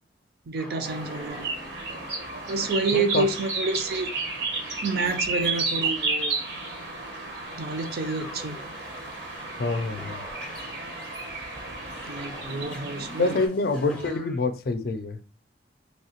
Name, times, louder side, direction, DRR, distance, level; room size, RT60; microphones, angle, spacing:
voice 1, 0.5-1.5 2.5-4.1 4.8-6.4 7.6-8.6 12.1-13.4 14.0-14.1, right 3 dB, 60° right, 0.5 m, -29 dB
sound 1, 0.6-2.4 4.6-4.7 5.0-6.2 7.8-9.5 9.8-14.4, left 1 dB, 5° left, 0.5 m, -45 dB
sound 2, 0.8-13.5, right 3 dB, 80° right, 1.0 m, -32 dB
voice 2, 2.9-3.3 9.6-10.2 13.2-15.2, left 3 dB, 60° left, 0.4 m, -26 dB
3.4 x 2.8 x 2.8 m
head